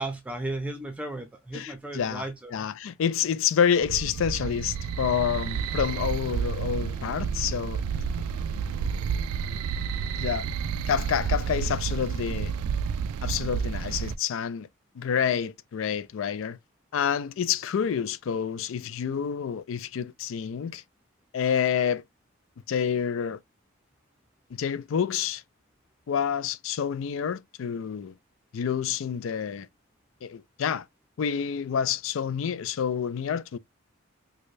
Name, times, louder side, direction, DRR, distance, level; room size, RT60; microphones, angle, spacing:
voice 1, 0.0-2.5, right 2 dB, 5° right, 0.6 m, -34 dB
voice 2, 1.5-2.3 2.5-7.8 10.1-10.5 10.9-12.5 13.2-14.7 15.0-16.6 16.9-20.8 21.3-22.0 22.7-23.4 24.6-25.4 26.1-28.1 28.5-29.7 30.2-30.8 31.2-33.6, left 7 dB, 65° left, 0.3 m, -28 dB
sound 1, 3.8-14.2, right 6 dB, 85° right, 0.3 m, -30 dB
Wind instrument woodwind instrument, 5.9-10.0, left 4 dB, 30° left, 1.9 m, -53 dB
4.7 x 2.2 x 2.5 m
head